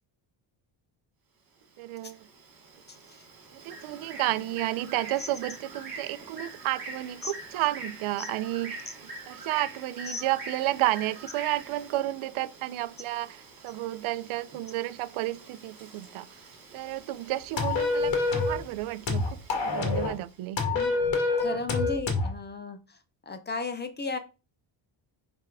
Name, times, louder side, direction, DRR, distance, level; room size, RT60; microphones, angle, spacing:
Bird, 1.6-20.4, right 3 dB, 50° right, 2.7 m, -45 dB
voice 1, 1.8-2.2 3.5-8.9 9.3-13.4 13.6-16.3 16.7-18.1 18.5-20.6, right 15 dB, 85° right, 0.6 m, -31 dB
sound 1, 17.6-18.6 19.1-20.2 20.6-22.3, left 3 dB, 65° left, 1.7 m, -26 dB
voice 2, 21.4-22.8 23.3-24.2, left 4 dB, 20° left, 0.6 m, -34 dB
5.8 x 3.5 x 4.7 m
cardioid pair, 165°, 48 cm